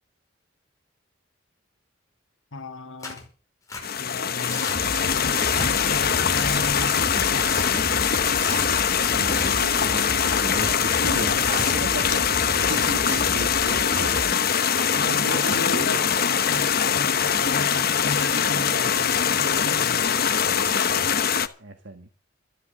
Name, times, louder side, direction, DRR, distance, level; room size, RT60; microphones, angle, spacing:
voice 1, 2.5-3.3 4.0-7.7 14.9-20.2, left 2 dB, 85° left, 1.8 m, -35 dB
Tearing, 3.0-3.2 3.7-3.8 4.4-4.8 5.3-5.7 6.3-6.9 7.4-7.7 8.3-8.7 9.2-9.5 10.2-10.7 11.3-11.8 12.3-12.9 13.4-13.9 14.4-14.8 15.3-15.6 16.3-16.6 17.2-17.4 18.0-18.3 18.8-19.2, left 3 dB, 15° left, 5.2 m, -36 dB
sound 1, 3.8-21.5, left 7 dB, 50° left, 1.0 m, -22 dB
sound 2, 4.7-14.3, right 1 dB, 40° right, 2.2 m, -34 dB
voice 2, 9.1-14.1 15.0-16.4 18.8-19.2 20.4-21.0 21.6-22.1, right 2 dB, 65° right, 1.6 m, -36 dB
13.5 x 10.5 x 6.7 m
head